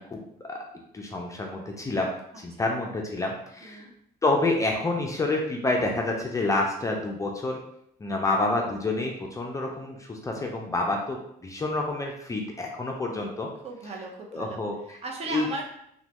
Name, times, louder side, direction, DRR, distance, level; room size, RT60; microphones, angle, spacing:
voice 1, 0.9-2.1 2.4-3.9 4.2-7.6 8.0-13.5 14.3-15.0 15.3-15.5, left 2 dB, 20° left, 0 dB, 0.4 m, -28 dB
voice 2, 2.3-2.7 3.6-3.9 13.6-14.6 15.0-15.6, right 3 dB, 40° right, 0 dB, 0.7 m, -37 dB
3.0 x 2.2 x 2.9 m, 0.71 s
cardioid pair, 110°, 17 cm